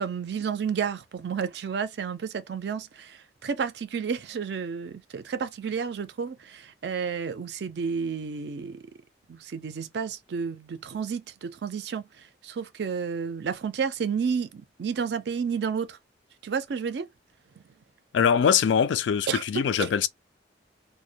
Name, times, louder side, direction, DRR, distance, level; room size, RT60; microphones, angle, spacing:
voice 1, 0.0-8.9 9.3-16.0 16.4-17.1 19.3-19.9, right 6 dB, 60° right, 0.4 m, -31 dB
voice 2, 18.1-20.1, left 7 dB, 80° left, 0.3 m, -22 dB
2.2 x 2.1 x 2.7 m
head